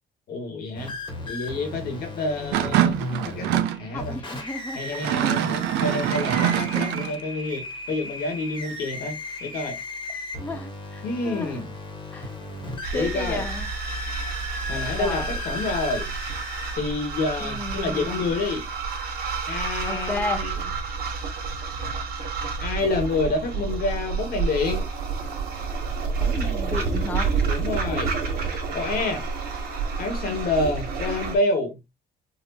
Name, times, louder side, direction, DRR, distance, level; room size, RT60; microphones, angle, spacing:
voice 1, 0.3-1.0 1.3-3.0 3.2-4.2 4.7-9.8 11.0-11.7 12.9-13.4 14.6-16.1 16.7-18.6 19.5-20.6 22.6-24.8 27.5-28.1 28.7-29.2 30.0-31.8, left 3 dB, 65° left, 1.4 m, -28 dB
sound 1, 0.7-16.8, left 2 dB, 30° left, 1.2 m, -36 dB
sound 2, 2.5-3.8 4.9-7.2, right 11 dB, 85° right, 0.5 m, -24 dB
voice 2, 3.9-5.4 10.4-11.6 12.1-12.3 12.9-13.7 15.0-15.4 17.4-18.3 19.9-20.5 26.2-27.3, left 3 dB, 10° left, 0.4 m, -33 dB
sound 3, 12.8-31.4, right 5 dB, 60° right, 1.4 m, -29 dB
4.3 x 2.3 x 2.7 m
cardioid pair, 110°, 17 cm